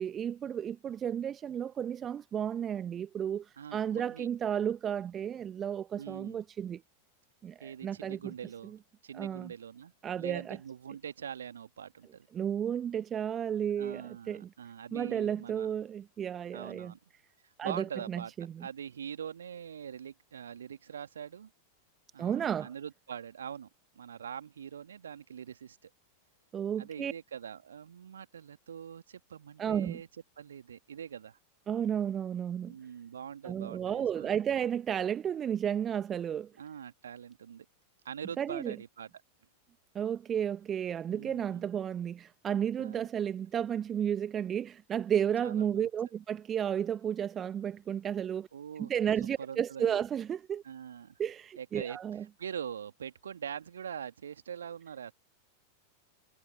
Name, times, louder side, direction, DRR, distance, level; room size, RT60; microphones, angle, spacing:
voice 1, 0.0-6.8 7.4-8.3 9.2-9.5 10.0-10.6 12.3-14.5 14.9-16.9 17.6-18.7 22.2-22.7 26.5-27.1 29.6-30.0 31.7-32.7 33.4-36.5 38.4-38.7 39.9-48.5 48.8-50.6 51.2-52.2, right 9 dB, 25° right, 1.2 m, -33 dB
voice 2, 3.6-4.3 6.0-6.4 7.6-8.8 9.0-12.3 13.8-15.8 16.5-17.0 17.4-18.3 18.6-21.5 22.1-23.7 23.9-25.9 26.8-30.1 30.4-31.4 32.6-34.3 36.6-37.7 38.0-39.1 41.1-41.7 42.8-43.1 45.4-45.9 48.5-48.9 49.4-50.0 50.6-51.2 51.6-52.0 52.4-55.1, right 8 dB, 65° right, 2.1 m, -43 dB
figure-of-eight pair, 90°, 0 cm